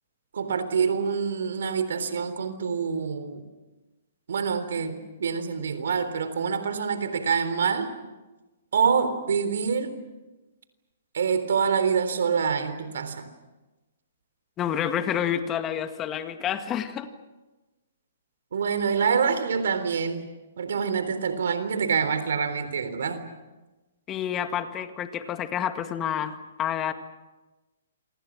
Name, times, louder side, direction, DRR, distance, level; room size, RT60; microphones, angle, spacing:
voice 1, 0.3-3.4 4.3-7.9 8.7-9.9 11.1-13.3 18.5-20.2 20.6-23.2, right 6 dB, 75° right, 11 dB, 3.7 m, -26 dB
voice 2, 14.6-17.1 24.1-26.9, left 9 dB, 20° left, 8 dB, 2.0 m, -29 dB
28.5 x 25.5 x 6.4 m, 1.1 s
hypercardioid pair, 140°, 0 cm